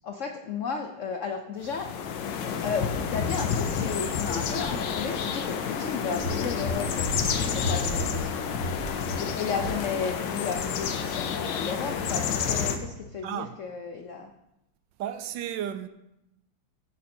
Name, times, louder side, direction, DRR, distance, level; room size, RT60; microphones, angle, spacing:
voice 1, 0.0-1.9 2.6-7.1 7.5-8.6 9.2-14.3, left 5 dB, 90° left, 0.6 m, -33 dB
sound 1, 1.6-12.8, left 7 dB, 70° left, 1.4 m, -29 dB
sound 2, 6.2-10.2 10.5-10.7, equal, 45° left, 4.7 m, -35 dB
voice 2, 13.2-13.6 15.0-15.9, right 10 dB, 75° right, 1.2 m, -33 dB
14.5 x 5.1 x 4.3 m
omnidirectional pair, 2.2 m